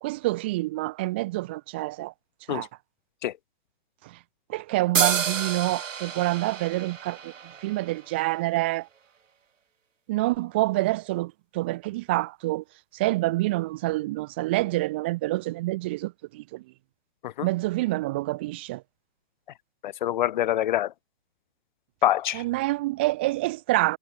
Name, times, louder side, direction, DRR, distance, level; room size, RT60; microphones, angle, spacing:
voice 1, 0.0-2.1 2.5-2.7 4.0-4.2 4.5-7.3 7.6-8.9 10.1-12.6 12.9-16.6 17.4-18.8 22.3-24.0, right 19 dB, 10° right, 0.6 m, -27 dB
sound 1, 4.9-8.5, right 7 dB, 80° right, 7.8 m, -30 dB
voice 2, 19.8-20.9 22.0-22.4, left 12 dB, 35° left, 2.0 m, -25 dB
hypercardioid pair, 165°, 38 cm